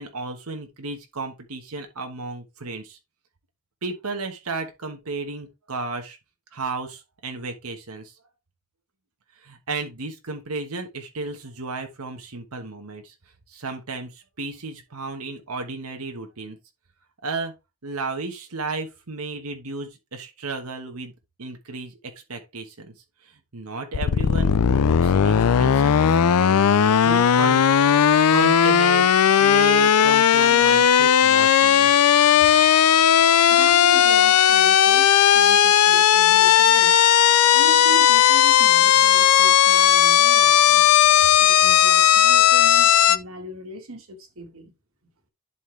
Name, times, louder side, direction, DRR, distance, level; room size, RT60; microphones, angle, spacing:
voice 1, 0.0-3.0 3.8-6.2 6.5-8.1 9.4-13.1 13.5-16.6 17.2-17.5 17.8-21.1 21.4-22.9 23.2-27.6 28.3-29.1 29.4-31.9, right 3 dB, 85° right, 1.3 m, -33 dB
sound 1, 23.9-43.2, left 9 dB, 85° left, 0.4 m, -16 dB
voice 2, 33.5-37.0 37.5-40.9 41.4-44.7, right 1 dB, 65° right, 1.8 m, -38 dB
11.0 x 4.3 x 3.2 m
head